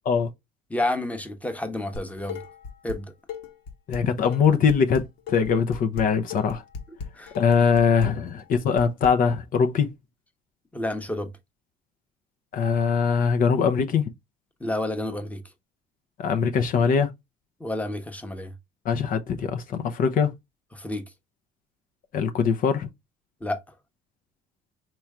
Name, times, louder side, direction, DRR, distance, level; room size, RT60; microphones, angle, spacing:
voice 1, 0.7-2.4 2.8-3.1 7.2-7.3 10.7-11.3 14.6-15.4 17.6-18.5 20.7-21.0 23.4-23.6, left 1 dB, 10° left, 1.0 m, -30 dB
Dishes pots and pans, 1.9-3.0 3.3-9.1, left 5 dB, 80° left, 1.3 m, -37 dB
voice 2, 3.9-6.6 7.4-9.9 12.5-14.1 16.2-17.1 18.8-20.3 22.1-22.9, left 6 dB, 50° left, 0.7 m, -22 dB
4.5 x 3.0 x 3.6 m
cardioid pair, 105°, 18 cm